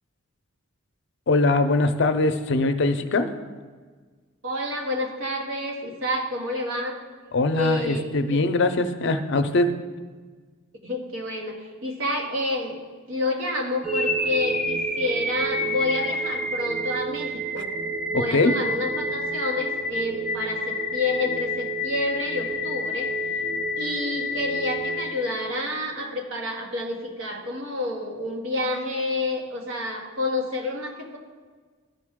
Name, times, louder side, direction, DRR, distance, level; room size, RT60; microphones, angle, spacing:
voice 1, 1.3-3.3 7.3-9.7 18.1-18.6, left 2 dB, 60° left, 9 dB, 0.6 m, -22 dB
voice 2, 4.4-7.0 7.5-8.4 10.8-12.7 13.1-17.7 18.1-23.1 23.8-31.2, left 1 dB, 85° right, 0 dB, 1.5 m, -29 dB
sound 1, 13.8-25.9, left 1 dB, ahead, 0.4 m, -28 dB
13.5 x 5.4 x 3.7 m, 1.5 s
head